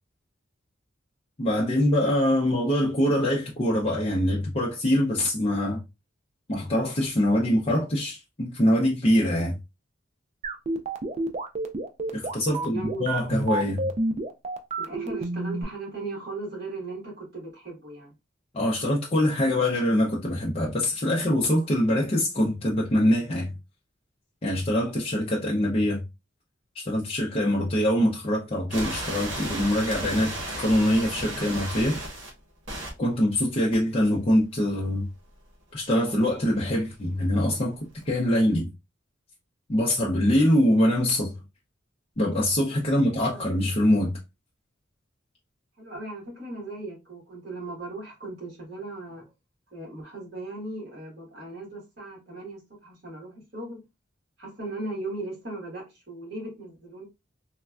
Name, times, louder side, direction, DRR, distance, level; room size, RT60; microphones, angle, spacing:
voice 1, 1.4-5.8 6.5-9.5 12.1-13.9 18.5-23.5 24.4-26.0 26.8-32.0 33.0-35.1 35.7-37.8 38.1-38.7 39.7-41.3 42.2-44.1, left 1 dB, 30° left, 0.5 m, -24 dB
sound 1, 10.4-15.6, right 2 dB, 35° right, 0.3 m, -29 dB
voice 2, 12.4-13.3 14.8-18.1 43.1-43.4 45.8-49.3 49.7-53.8 54.4-57.0, right 2 dB, 55° right, 1.5 m, -37 dB
sound 2, 28.7-32.3 32.7-32.9 33.7-33.8 38.0-38.1, right 1 dB, 75° right, 1.2 m, -34 dB
3.2 x 2.2 x 2.3 m
head